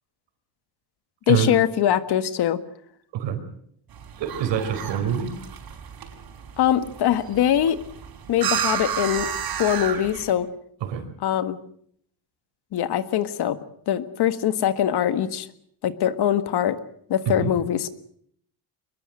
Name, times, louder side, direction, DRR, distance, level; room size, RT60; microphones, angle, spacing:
voice 1, 1.3-2.6 6.6-7.8 8.3-9.3 9.6-10.5 11.2-11.6 12.7-13.6 13.9-15.5 15.8-16.8 17.1-18.0, left 10 dB, 65° left, 12 dB, 1.7 m, -22 dB
sound 1, 3.9-10.3, right 8 dB, 55° right, 5.2 m, -32 dB
voice 2, 4.2-5.3 10.8-11.0 17.3-17.5, right 9 dB, 85° right, 8 dB, 4.9 m, -25 dB
23.0 x 21.5 x 7.7 m, 0.66 s
cardioid pair, 145°, 42 cm